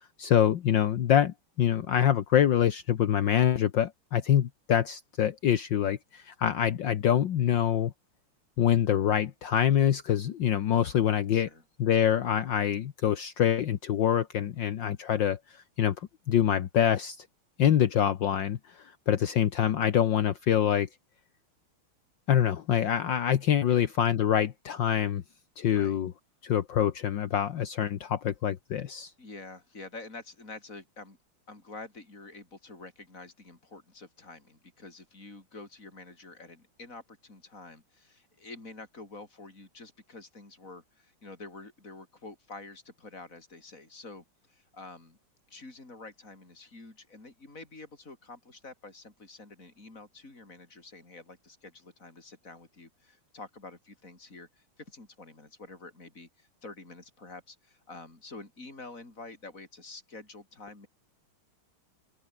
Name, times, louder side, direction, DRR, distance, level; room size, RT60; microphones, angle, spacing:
voice 1, 0.2-7.9 8.6-11.5 11.8-17.2 17.6-20.9 22.3-25.2 25.6-26.1 26.4-29.1, left 9 dB, 65° left, 1.7 m, -25 dB
voice 2, 11.3-11.6 23.7-23.9 25.7-26.0 29.2-31.2 31.5-45.2 45.5-60.9, left 3 dB, 35° left, 6.2 m, -48 dB
open air
omnidirectional pair, 2.3 m